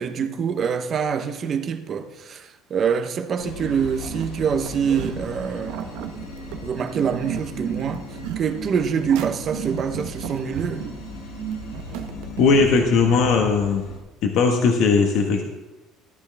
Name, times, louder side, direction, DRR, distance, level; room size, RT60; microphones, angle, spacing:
voice 1, 0.0-5.9 6.6-8.1 8.4-10.9, right 7 dB, 35° right, 0.9 m, -25 dB
sound 1, 3.4-14.0, left 2 dB, 85° left, 4.0 m, -38 dB
sound 2, 4.0-12.7, right 9 dB, 85° right, 1.0 m, -34 dB
voice 2, 12.4-13.8 14.2-15.4, left 4 dB, 60° left, 1.3 m, -18 dB
14.0 x 11.5 x 3.5 m
cardioid pair, 150°, 0 cm